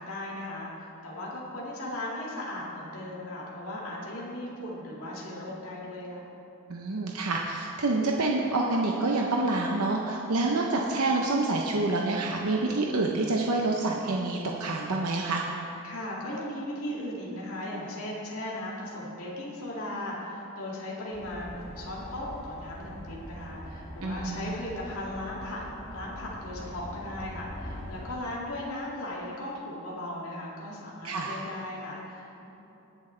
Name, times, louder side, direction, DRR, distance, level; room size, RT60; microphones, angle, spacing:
voice 1, 0.0-6.3 15.8-25.6 25.9-32.5, left 1 dB, 70° left, -5 dB, 2.3 m, -37 dB
voice 2, 6.7-15.4 24.0-24.5 31.0-31.4, right 2 dB, 75° right, -1 dB, 0.8 m, -27 dB
sound 1, 21.1-28.1, equal, 30° left, 2.9 m, -43 dB
20.5 x 7.6 x 3.3 m, 2.9 s
head